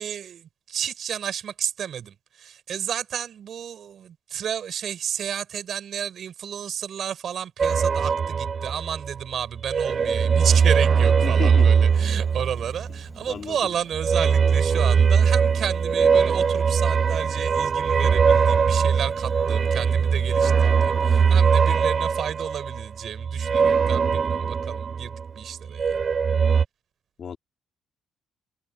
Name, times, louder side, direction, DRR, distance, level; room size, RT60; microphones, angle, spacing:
voice 1, 0.0-26.0, right 8 dB, 60° right, 6.9 m, -32 dB
sound 1, 7.6-9.2 9.5-13.1 13.9-25.3 25.6-26.6, right 6 dB, 45° right, 0.4 m, -21 dB
voice 2, 11.2-11.7 13.3-13.7 27.2-27.4, left 7 dB, 55° left, 3.9 m, -33 dB
Insect, 11.9-21.7, left 2 dB, 15° left, 7.6 m, -48 dB
cardioid pair, 90°, 0 cm